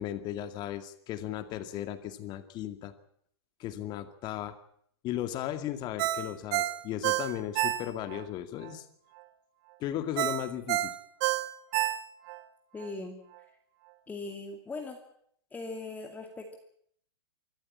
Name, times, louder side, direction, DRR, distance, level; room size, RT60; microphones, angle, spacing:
voice 1, 0.0-2.9 3.6-4.5 5.0-8.8 9.8-10.9, left 12 dB, 30° left, 10 dB, 2.2 m, -36 dB
Ringtone, 6.0-8.2 8.6-8.7 10.2-12.4 12.8-12.9, right 15 dB, 45° right, 1.7 m, -29 dB
voice 2, 12.7-13.2 14.1-15.0 15.5-16.6, left 3 dB, 10° left, 3 dB, 2.4 m, -39 dB
25.0 x 14.0 x 8.8 m, 0.68 s
hypercardioid pair, 135°, 14 cm